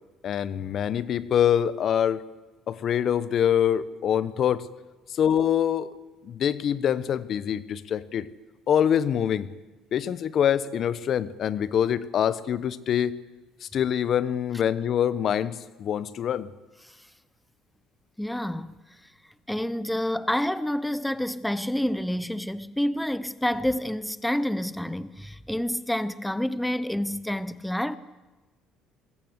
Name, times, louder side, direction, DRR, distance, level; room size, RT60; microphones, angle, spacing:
voice 1, 0.2-2.2 2.7-4.7 5.1-5.9 6.2-8.3 8.7-9.5 9.9-13.2 13.6-16.5, left 9 dB, 50° left, 1.0 m, -25 dB
voice 2, 18.2-19.1 19.5-28.0, left 1 dB, 5° left, 0.8 m, -28 dB
24.0 x 22.0 x 8.2 m
cardioid pair, 110°, 0 cm